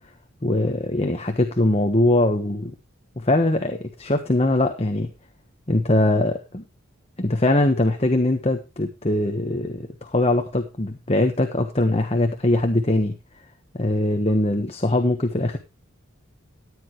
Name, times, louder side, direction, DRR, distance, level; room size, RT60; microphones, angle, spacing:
voice 1, 0.4-2.7 3.2-5.1 5.7-6.6 7.2-13.2 13.7-15.6, left 1 dB, 30° left, 6 dB, 1.2 m, -21 dB
14.0 x 10.0 x 3.1 m, 0.27 s
head